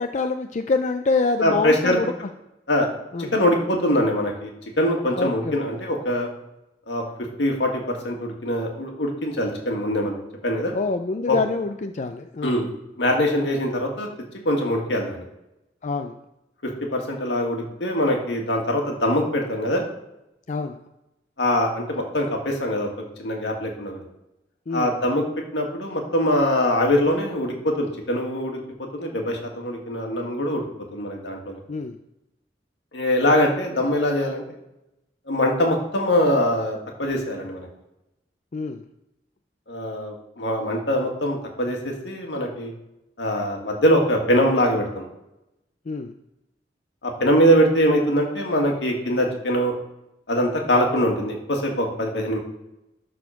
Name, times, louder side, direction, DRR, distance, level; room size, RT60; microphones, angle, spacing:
voice 1, 0.0-2.1 3.1-3.3 5.2-5.6 10.7-12.7 15.8-16.2 20.5-20.8 24.7-25.0 31.7-32.0 38.5-38.8 45.9-46.1, left 3 dB, 45° left, 7 dB, 0.4 m, -26 dB
voice 2, 1.4-2.0 2.7-2.9 3.3-4.5 4.8-6.3 6.9-7.0 7.4-10.7 11.3-11.4 12.4-12.7 13.0-14.1 14.5-15.2 16.6-19.8 21.4-22.9 23.2-24.0 24.7-25.2 25.5-28.6 28.9-30.6 30.9-31.6 32.9-34.4 35.3-37.7 39.7-42.7 43.2-45.1 47.0-49.7 50.3-52.4, equal, 75° left, 1 dB, 2.1 m, -23 dB
12.5 x 4.2 x 5.8 m, 0.92 s
head